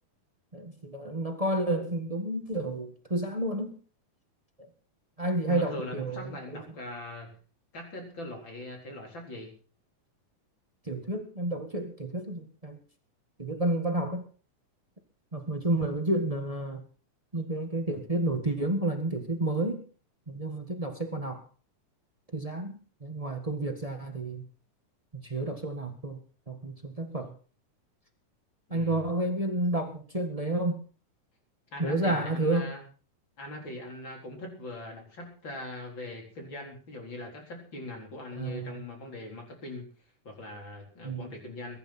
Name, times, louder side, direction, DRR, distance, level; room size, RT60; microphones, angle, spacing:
voice 1, 0.5-3.8 4.6-4.7 5.2-6.6 10.8-12.8 13.4-14.2 15.3-16.8 17.3-19.8 20.3-21.4 22.3-24.5 25.2-26.2 26.5-27.3 28.7-30.8 31.8-32.7 38.4-38.7 41.0-41.3, right 1 dB, 25° right, 5 dB, 0.7 m, -30 dB
voice 2, 5.5-7.4 7.7-9.5 28.7-29.1 31.7-32.8 33.4-39.9 40.2-41.8, left 1 dB, 35° left, 1 dB, 4.7 m, -41 dB
22.5 x 11.0 x 4.3 m, 0.39 s
omnidirectional pair, 3.6 m